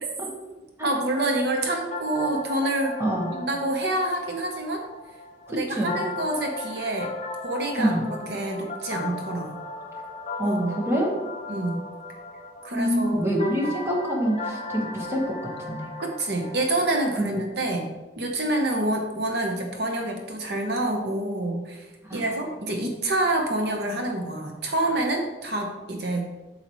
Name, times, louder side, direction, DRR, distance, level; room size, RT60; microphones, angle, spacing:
voice 1, 0.8-2.9 3.3-4.8 5.5-7.1 7.4-9.6 10.4-10.8 11.5-11.9 12.6-13.4 16.0-17.8 18.2-26.2, right 1 dB, 60° right, 2 dB, 0.9 m, -27 dB
sound 1, 1.1-17.5, left 2 dB, 35° left, 1.1 m, -37 dB
voice 2, 3.0-3.3 5.5-5.9 7.8-8.0 10.4-11.1 12.7-15.9 17.2-17.4 22.0-22.4, equal, 15° right, -2 dB, 1.3 m, -26 dB
8.1 x 6.7 x 3.1 m, 1.1 s
head